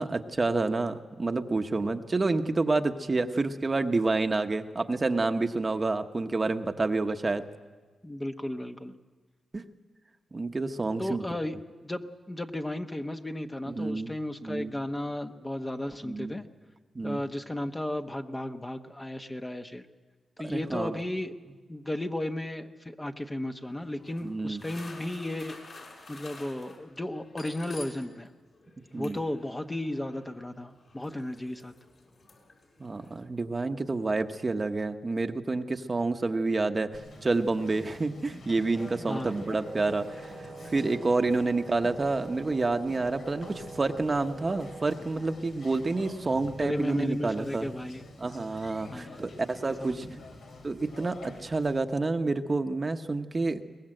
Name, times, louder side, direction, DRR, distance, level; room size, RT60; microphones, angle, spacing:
voice 1, 0.0-7.4 9.5-9.6 10.3-11.2 13.7-14.1 14.4-14.7 16.0-16.4 16.9-17.2 20.4-21.0 24.2-24.6 28.9-29.2 32.8-40.1 40.7-47.7 48.2-50.0 50.6-53.6, right 3 dB, 30° right, 7 dB, 1.0 m, -28 dB
voice 2, 8.0-9.0 11.0-11.6 11.8-16.4 17.0-19.8 20.4-21.3 21.7-25.6 26.1-28.3 28.9-31.7 39.1-39.3 46.6-48.0 48.9-49.2 49.6-50.0, left 1 dB, 15° left, 6 dB, 1.0 m, -34 dB
sound 1, 23.6-28.3 28.5-33.2, left 3 dB, 55° left, 5.7 m, -50 dB
Conversation, 36.9-51.8, left 2 dB, 85° left, 3.5 m, -47 dB
Wind instrument woodwind instrument, 39.6-45.0, right 4 dB, 50° right, 1.3 m, -45 dB
22.5 x 19.5 x 7.8 m, 1.3 s
cardioid pair, 90°, 0 cm